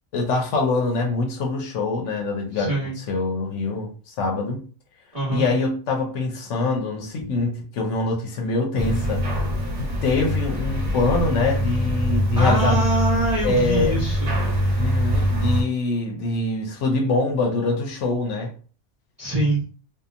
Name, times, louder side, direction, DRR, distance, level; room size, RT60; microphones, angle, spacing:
voice 1, 0.1-4.6 5.3-9.2 9.8-12.9 13.4-14.0 14.8-18.5, left 3 dB, 75° left, 1.0 m, -24 dB
voice 2, 2.5-2.9 5.1-5.5 7.2-7.3 12.4-14.4 19.2-19.7, right 1 dB, 35° right, 0.8 m, -24 dB
sound 1, 8.8-15.6, equal, 70° right, 1.3 m, -23 dB
2.8 x 2.4 x 2.4 m
omnidirectional pair, 1.2 m